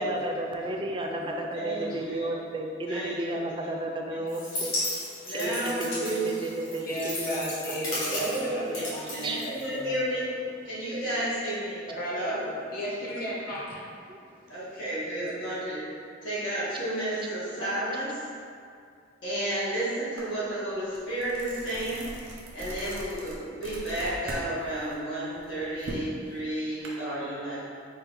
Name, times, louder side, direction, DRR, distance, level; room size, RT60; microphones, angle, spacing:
voice 1, 0.0-8.9 9.2-9.4 10.9-11.2 14.1-14.2, right 1 dB, 25° right, 2 dB, 0.3 m, -33 dB
voice 2, 0.6-1.4 1.7-2.1 6.9-10.0 10.6-10.7 11.9-14.8, equal, 50° left, -5 dB, 0.7 m, -36 dB
voice 3, 1.5-2.3 2.9-3.1 3.6-3.7 5.2-6.3 8.0-10.3 10.6-11.8 12.0-12.4 14.5-15.9 16.2-18.3 19.2-22.1 22.5-27.7, right 1 dB, 70° left, -10 dB, 1.4 m, -32 dB
sound 1, 4.3-10.0, left 1 dB, 85° left, 1.2 m, -35 dB
sound 2, 20.2-20.3 20.7-24.5 24.8-26.9, right 1 dB, 75° right, 0.7 m, -40 dB
4.0 x 2.1 x 4.0 m, 2.3 s
head